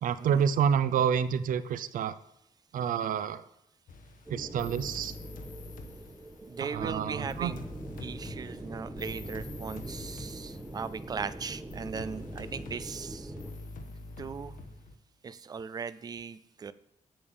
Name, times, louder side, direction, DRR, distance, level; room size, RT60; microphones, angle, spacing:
voice 1, 0.0-2.1 2.7-3.4 4.3-5.1 6.7-7.5, right 8 dB, 85° right, 14 dB, 0.6 m, -28 dB
sound 1, 3.9-6.6 7.3-11.2 11.7-14.9, left 2 dB, 90° left, 1.3 m, -45 dB
sound 2, 4.3-13.5, right 1 dB, 10° right, 1.2 m, -43 dB
voice 2, 6.4-7.6 8.0-13.3 14.2-14.5 15.2-16.7, right 5 dB, 30° right, 15 dB, 0.4 m, -38 dB
8.7 x 7.2 x 8.7 m, 0.81 s
wide cardioid pair, 170°, 14 cm